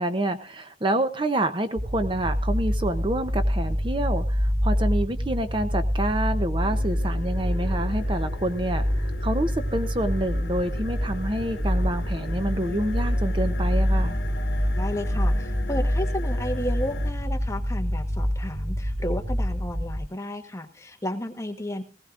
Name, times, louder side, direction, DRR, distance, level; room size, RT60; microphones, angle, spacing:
voice 1, 0.0-14.2, right 1 dB, 30° right, 9 dB, 0.8 m, -28 dB
sound 1, 1.8-20.0, equal, 65° right, 3.1 m, -26 dB
sound 2, 6.6-17.1, left 2 dB, 70° left, 1.2 m, -40 dB
voice 2, 14.8-21.8, left 1 dB, 15° left, 5 dB, 1.2 m, -33 dB
19.0 x 16.5 x 2.5 m, 0.34 s
head